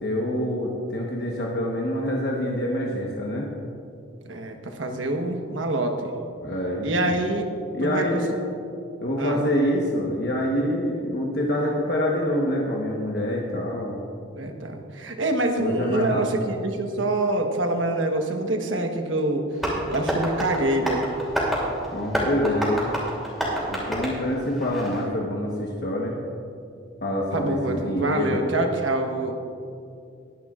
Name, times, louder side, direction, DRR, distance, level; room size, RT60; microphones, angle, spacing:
voice 1, 0.0-3.5 6.4-7.2 7.7-8.3 9.0-14.0 15.6-16.2 21.9-22.8 23.7-26.2 27.0-28.4, equal, 55° left, -2 dB, 1.2 m, -26 dB
voice 2, 4.3-6.1 6.8-7.5 7.8-8.4 9.2-9.4 14.3-19.4 19.9-21.1 27.3-29.3, right 2 dB, 75° right, 3 dB, 1.2 m, -26 dB
Tap, 19.6-25.0, equal, ahead, 2.7 m, -28 dB
21.0 x 11.0 x 2.5 m, 2.5 s
head